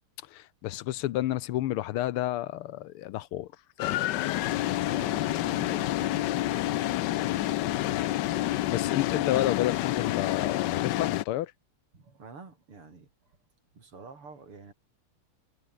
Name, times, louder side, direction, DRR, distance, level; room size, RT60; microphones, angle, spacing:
voice 1, 0.3-3.5 3.8-4.0 8.6-11.5, left 14 dB, 90° left, 1.7 m, -30 dB
sound 1, 3.8-11.2, left 15 dB, 70° left, 1.1 m, -28 dB
voice 2, 4.9-8.0 11.9-13.1 13.7-14.7, right 4 dB, 85° right, 5.2 m, -48 dB
omnidirectional pair, 2.4 m